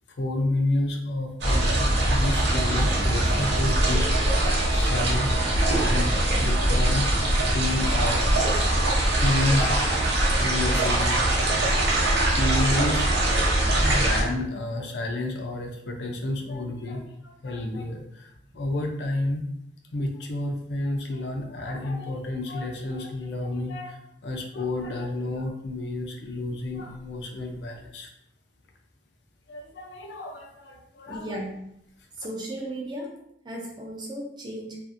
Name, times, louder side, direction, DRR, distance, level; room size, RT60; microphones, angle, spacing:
voice 1, 0.2-7.1 7.5-8.5 9.2-11.8 12.3-19.4 19.9-28.1 29.5-31.4, left 2 dB, 75° left, 3 dB, 0.5 m, -30 dB
sound 1, 1.4-14.2, right 1 dB, 70° right, 0.7 m, -22 dB
voice 2, 31.1-31.6 32.2-33.2 33.4-34.8, right 1 dB, 25° right, -1 dB, 0.5 m, -35 dB
2.6 x 2.4 x 2.5 m, 0.77 s
head